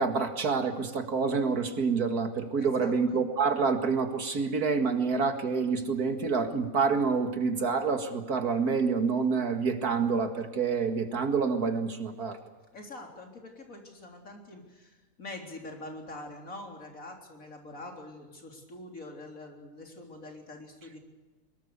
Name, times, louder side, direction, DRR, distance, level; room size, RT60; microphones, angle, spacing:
voice 1, 0.0-12.4, right 5 dB, 80° right, 7 dB, 2.6 m, -27 dB
voice 2, 2.6-3.3 12.7-21.0, left 2 dB, 60° left, 2 dB, 4.2 m, -45 dB
23.5 x 21.5 x 6.8 m, 1.2 s
omnidirectional pair, 1.6 m